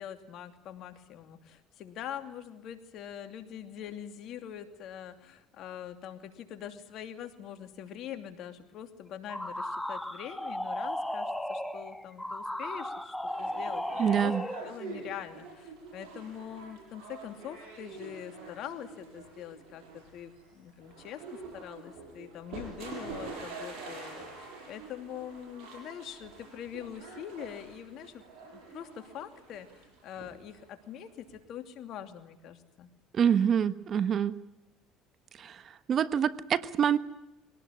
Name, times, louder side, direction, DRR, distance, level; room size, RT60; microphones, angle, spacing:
voice 1, 0.0-14.3 14.6-28.2 28.5-32.9, left 9 dB, 60° left, 7 dB, 2.8 m, -44 dB
sound 1, 9.3-14.7, left 1 dB, 5° left, 2.0 m, -35 dB
sound 2, 13.3-31.4, right 4 dB, 75° right, 7.8 m, -46 dB
voice 2, 14.0-14.4 33.1-34.4 35.3-37.0, right 8 dB, 45° right, 14 dB, 1.2 m, -26 dB
23.5 x 18.0 x 9.9 m, 0.97 s
supercardioid pair, 90°, 0 cm